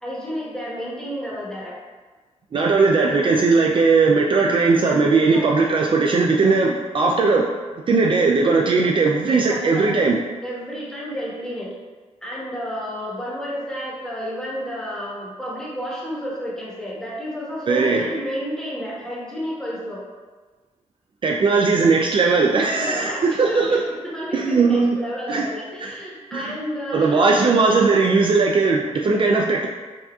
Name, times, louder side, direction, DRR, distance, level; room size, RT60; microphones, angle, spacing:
voice 1, 0.0-1.8 2.8-3.7 5.3-5.5 9.3-9.9 10.4-11.7 12.2-20.0 22.7-27.3, equal, 5° left, -6 dB, 1.2 m, -31 dB
voice 2, 2.5-7.5 7.9-10.2 17.7-18.1 21.2-23.8 24.3-25.0 25.3-25.5 25.8-25.9 26.3-26.6 26.9-29.7, right 4 dB, 45° right, 0 dB, 0.3 m, -18 dB
5.8 x 2.6 x 2.3 m, 1.3 s
cardioid pair, 95°, 12 cm